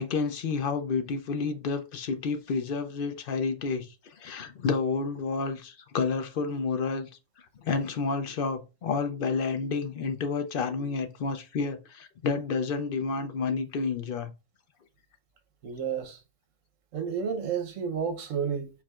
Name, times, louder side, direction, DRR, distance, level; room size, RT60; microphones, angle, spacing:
voice 1, 0.0-7.1 7.6-14.3, left 4 dB, 55° left, 0.7 m, -30 dB
voice 2, 15.6-16.2 16.9-18.7, right 7 dB, 75° right, 1.2 m, -31 dB
4.8 x 4.2 x 2.3 m
omnidirectional pair, 1.4 m